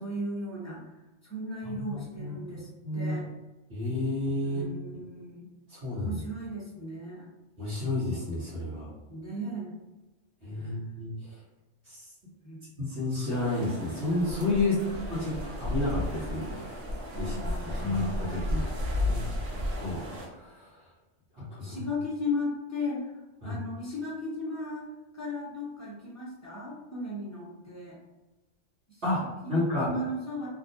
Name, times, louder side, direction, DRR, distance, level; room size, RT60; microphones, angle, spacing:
voice 1, 0.0-3.3 4.4-5.5 5.9-7.3 9.1-9.7 10.5-10.8 12.4-12.6 14.6-15.0 17.1-18.0 19.0-19.3 21.6-28.0 28.9-29.0 29.4-30.5, left 1 dB, 20° left, -7 dB, 0.5 m, -36 dB
voice 2, 1.6-2.5 2.8-3.2 3.7-4.6 5.7-6.2 7.6-8.9 10.4-11.4 11.8-12.1 12.8-14.8 15.1-16.5 17.2-17.4 17.6-18.7 19.1-20.0 20.3-20.8 21.4-21.8 23.4-23.6 29.0-29.9, left 2 dB, 60° right, -10 dB, 1.3 m, -31 dB
sound 1, 13.3-20.3, left 1 dB, 80° right, 1.0 m, -33 dB
2.9 x 2.4 x 2.5 m, 1.1 s
omnidirectional pair, 1.3 m